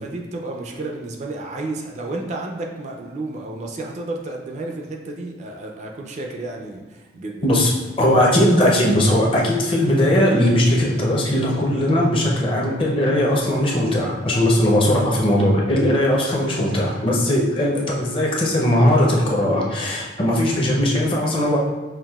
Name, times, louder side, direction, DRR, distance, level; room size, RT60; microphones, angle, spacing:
voice 1, 0.0-7.5, right 2 dB, 35° right, 1 dB, 0.3 m, -31 dB
voice 2, 8.0-21.6, left 1 dB, 30° left, -3 dB, 0.6 m, -19 dB
5.8 x 2.5 x 2.3 m, 1.3 s
head